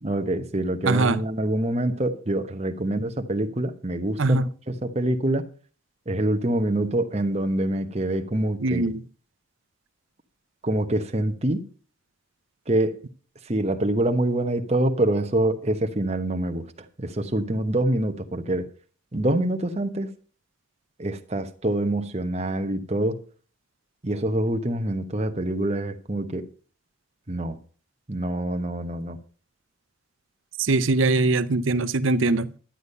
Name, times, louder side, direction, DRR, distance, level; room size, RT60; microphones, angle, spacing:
voice 1, 0.0-5.5 6.1-8.9 10.6-11.6 12.7-13.0 13.4-16.6 17.0-18.7 19.1-20.1 21.0-23.2 24.0-26.4 27.3-27.6 28.1-29.2, right 1 dB, 30° right, 1.0 m, -25 dB
voice 2, 0.8-1.2 4.2-4.5 8.6-9.0 30.6-32.6, right 3 dB, 75° right, 0.7 m, -22 dB
11.5 x 8.3 x 5.4 m
head